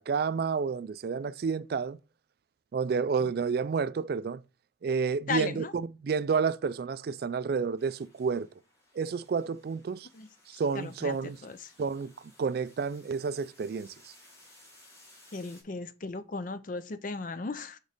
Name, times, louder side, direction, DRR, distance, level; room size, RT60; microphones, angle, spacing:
voice 1, 0.0-2.0 2.7-4.4 4.8-8.5 8.9-10.1 10.5-11.4 11.8-12.1 12.4-14.1, right 5 dB, 55° right, 0.3 m, -30 dB
voice 2, 5.3-5.7 10.1-10.3 10.7-11.7 15.3-17.8, left 3 dB, 45° left, 0.5 m, -36 dB
sound 1, 7.8-15.6, left 1 dB, 15° left, 3.5 m, -59 dB
6.4 x 4.0 x 4.9 m
head